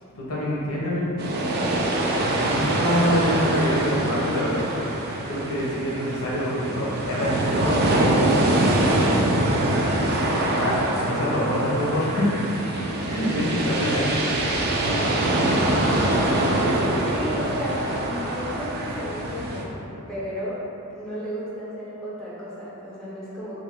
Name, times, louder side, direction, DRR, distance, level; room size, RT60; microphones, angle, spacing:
voice 1, 0.2-1.2 2.3-4.7 5.3-8.2 9.8-12.3 13.1-14.2, equal, 70° left, -6 dB, 0.8 m, -26 dB
sound 1, 1.2-19.6, right 1 dB, 45° right, 0.3 m, -24 dB
voice 2, 16.6-20.6 20.9-23.6, equal, 5° left, -10 dB, 0.7 m, -33 dB
2.6 x 2.5 x 3.4 m, 2.9 s
head